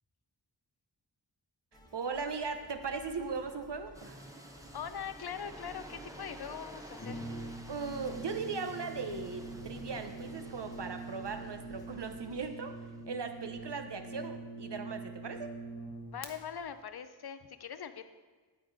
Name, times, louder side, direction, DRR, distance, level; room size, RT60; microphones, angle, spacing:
sound 1, 1.7-12.5, left 1 dB, 10° left, 1.3 m, -57 dB
voice 1, 1.9-4.2 7.7-12.8 13.1-15.5, right 4 dB, 65° right, 7 dB, 0.9 m, -38 dB
sound 2, 3.9-13.8, right 1 dB, 5° right, 0.9 m, -51 dB
voice 2, 4.7-7.4 16.1-18.0, left 7 dB, 60° left, 11 dB, 0.6 m, -42 dB
Brass instrument, 7.0-16.3, right 2 dB, 40° left, 1.0 m, -44 dB
9.3 x 8.4 x 4.0 m, 1.4 s
wide cardioid pair, 55°, 44 cm